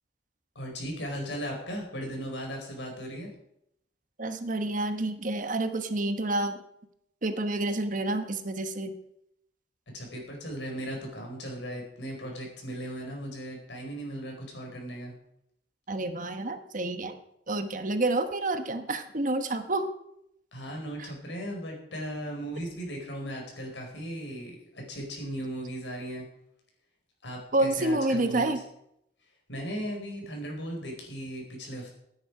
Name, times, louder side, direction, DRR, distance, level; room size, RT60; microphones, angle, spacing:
voice 1, 0.5-3.3 9.9-15.1 20.5-26.3 27.2-28.6 29.5-31.9, equal, 80° left, 1 dB, 5.0 m, -37 dB
voice 2, 4.2-6.6 7.2-8.9 15.9-17.2 17.5-19.9 21.0-21.1 27.5-28.6, right 2 dB, 50° right, 8 dB, 1.2 m, -29 dB
16.5 x 9.5 x 4.9 m, 0.77 s
head